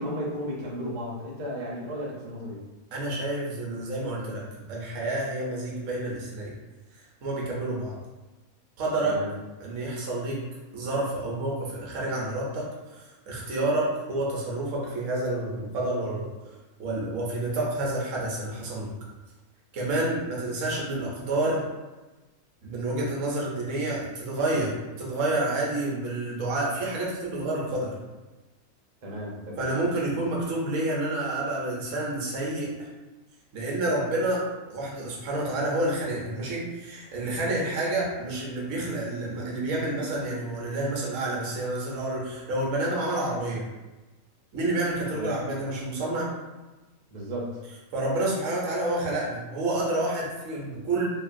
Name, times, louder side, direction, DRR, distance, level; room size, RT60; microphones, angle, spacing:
voice 1, 0.0-2.6 9.0-9.3 29.0-29.7 45.1-45.3 47.1-47.6, equal, 40° right, -5 dB, 0.5 m, -34 dB
voice 2, 2.9-4.4 4.7-6.5 7.2-8.0 8.8-9.2 9.6-10.4 10.7-16.3 16.8-18.9 19.7-21.6 22.6-24.7 25.0-27.9 29.6-32.9 33.5-34.4 34.7-43.6 44.5-46.3 47.9-51.1, right 2 dB, 65° right, -4 dB, 1.1 m, -29 dB
3.1 x 2.4 x 2.5 m, 1.1 s
omnidirectional pair, 1.5 m